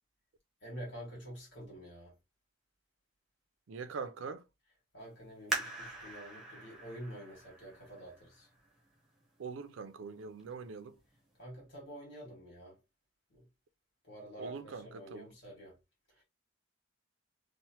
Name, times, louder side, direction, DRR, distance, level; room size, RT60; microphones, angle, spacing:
voice 1, 0.6-2.1 4.9-8.5 11.4-12.8 13.3-13.5 14.0-15.8, right 1 dB, 65° left, 1.6 m, -48 dB
voice 2, 3.7-4.4 9.4-11.0 14.4-15.3, right 5 dB, 80° right, 0.4 m, -43 dB
sound 1, 5.5-8.9 9.5-9.6 10.2-10.6 11.0-11.1, right 1 dB, ahead, 0.7 m, -41 dB
3.0 x 2.0 x 2.9 m
head